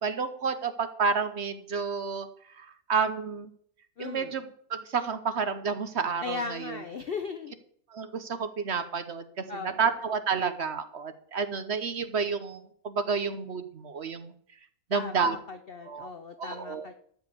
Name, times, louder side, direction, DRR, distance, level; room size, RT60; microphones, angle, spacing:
voice 1, 0.0-2.3 2.9-3.5 4.0-4.4 4.7-6.8 7.9-9.2 9.6-14.3 14.9-15.4 15.9-16.1 16.4-16.9, right 5 dB, 50° right, 11 dB, 0.8 m, -30 dB
voice 2, 4.0-4.4 6.2-7.5 9.5-9.8 14.9-17.0, left 5 dB, 55° left, 8 dB, 0.6 m, -37 dB
13.0 x 5.1 x 8.4 m, 0.63 s
omnidirectional pair, 1.9 m